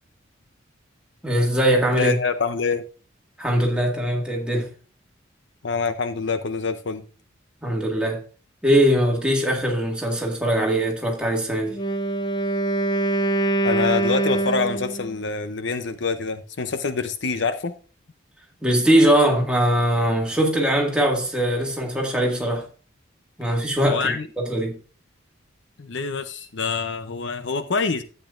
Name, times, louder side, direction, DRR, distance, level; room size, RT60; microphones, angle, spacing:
voice 1, 1.2-2.2 3.4-4.7 7.6-8.2 8.6-11.8 18.6-22.7 23.4-24.8, right 1 dB, 5° right, 1.9 m, -21 dB
voice 2, 1.9-2.8 5.6-7.0 13.6-17.7 23.9-24.3 25.8-28.0, left 4 dB, 60° left, 0.7 m, -26 dB
Wind instrument woodwind instrument, 11.7-15.2, right 2 dB, 20° left, 0.6 m, -24 dB
12.0 x 8.3 x 2.5 m
head